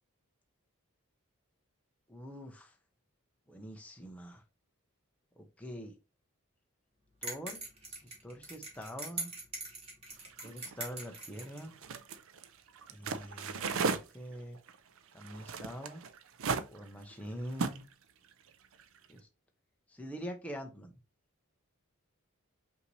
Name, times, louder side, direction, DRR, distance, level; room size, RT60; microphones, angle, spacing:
voice 1, 2.1-2.7 3.5-4.4 5.4-5.9 7.2-7.6 8.2-9.3 10.4-11.8 12.9-14.6 15.1-16.0 16.7-17.8 19.1-19.3 19.9-20.9, equal, 5° left, 0.5 m, -44 dB
sound 1, 7.2-11.6, right 3 dB, 25° right, 1.5 m, -42 dB
sound 2, 10.2-14.0 14.3-17.9 18.3-19.1, right 5 dB, 65° right, 0.4 m, -36 dB
5.5 x 2.7 x 3.1 m
head